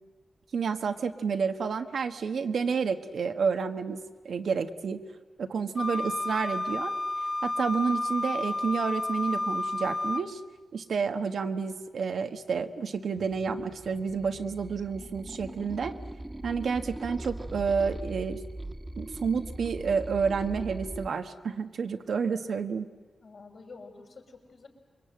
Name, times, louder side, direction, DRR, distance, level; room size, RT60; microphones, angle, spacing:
voice 1, 0.5-5.0 5.4-6.9 7.4-10.4 10.7-16.0 16.4-18.4 19.0-22.9, right 5 dB, 80° right, 7 dB, 1.4 m, -30 dB
Wind instrument woodwind instrument, 5.8-10.3, left 2 dB, 25° left, 0.9 m, -31 dB
sound 1, 13.2-21.1, right 1 dB, 15° right, 1.6 m, -40 dB
voice 2, 23.2-24.7, left 4 dB, 65° left, 1 dB, 5.9 m, -48 dB
27.5 x 23.0 x 9.0 m, 1.4 s
cardioid pair, 75°, 0 cm